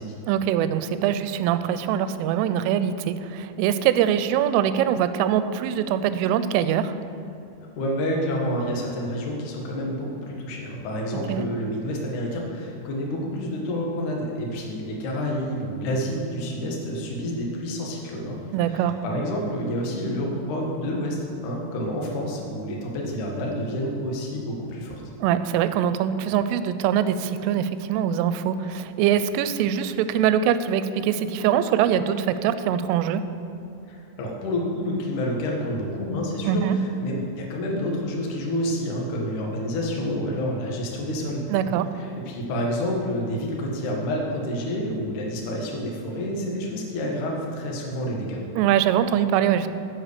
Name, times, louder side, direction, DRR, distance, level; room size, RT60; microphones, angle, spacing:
voice 1, 0.3-6.9 11.3-11.5 18.5-19.0 25.2-33.3 36.5-36.8 41.5-41.9 48.6-49.7, right 9 dB, 85° right, 12 dB, 3.1 m, -23 dB
voice 2, 7.8-18.4 18.7-25.0 33.9-48.4, equal, 60° left, -1 dB, 2.2 m, -29 dB
10.0 x 8.2 x 6.6 m, 2.6 s
omnidirectional pair, 5.6 m